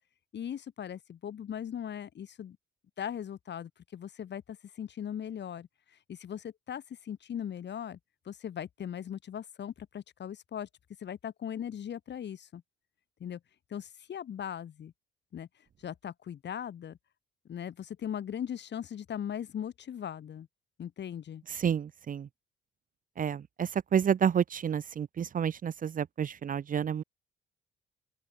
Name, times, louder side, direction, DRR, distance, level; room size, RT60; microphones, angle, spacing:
voice 1, 0.3-2.6 3.0-5.7 6.1-8.0 8.3-10.7 11.0-12.6 13.2-13.4 13.7-14.9 15.3-15.5 15.8-17.0 17.5-20.5 20.8-21.4, left 9 dB, 60° left, 8.0 m, -39 dB
voice 2, 21.5-22.3 23.2-27.0, right 8 dB, 45° right, 0.7 m, -30 dB
open air
cardioid pair, 90°, 20 cm